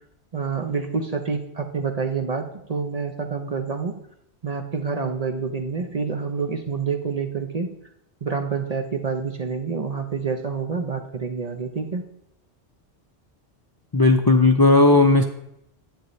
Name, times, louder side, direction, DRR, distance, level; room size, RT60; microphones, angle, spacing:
voice 1, 0.3-4.0 4.4-7.7 8.2-12.0, right 5 dB, 40° right, 5 dB, 0.7 m, -27 dB
voice 2, 13.9-15.2, left 2 dB, 30° left, 5 dB, 0.4 m, -15 dB
10.5 x 8.3 x 3.2 m, 0.79 s
omnidirectional pair, 1.2 m